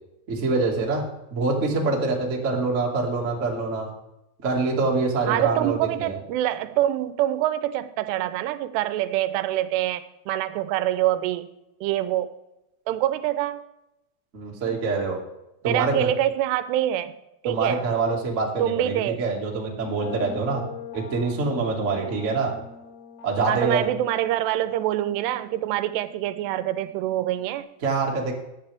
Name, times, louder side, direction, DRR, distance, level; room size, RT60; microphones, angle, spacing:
voice 1, 0.3-1.0 1.3-3.9 4.4-6.1 14.3-15.2 15.6-16.1 17.4-20.6 20.9-22.5 23.2-23.9 27.8-28.3, right 3 dB, 60° right, -1 dB, 0.7 m, -25 dB
voice 2, 5.3-11.5 11.8-12.3 12.9-13.6 15.6-17.2 17.4-17.8 18.6-19.2 23.5-27.7, right 13 dB, 80° right, 13 dB, 2.5 m, -25 dB
sound 1, 20.0-27.6, left 6 dB, 75° left, 3.4 m, -43 dB
14.5 x 9.8 x 3.4 m, 0.90 s
omnidirectional pair, 5.1 m